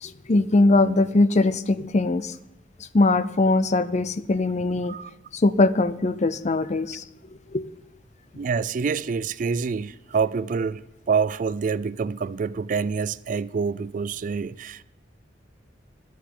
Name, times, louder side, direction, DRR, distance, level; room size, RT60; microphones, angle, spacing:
voice 1, 0.0-2.3 2.9-5.0 5.3-7.0 7.5-7.6, left 2 dB, 40° left, 0.5 m, -21 dB
voice 2, 8.3-14.8, right 5 dB, 45° right, 0.3 m, -27 dB
11.0 x 7.2 x 9.4 m
head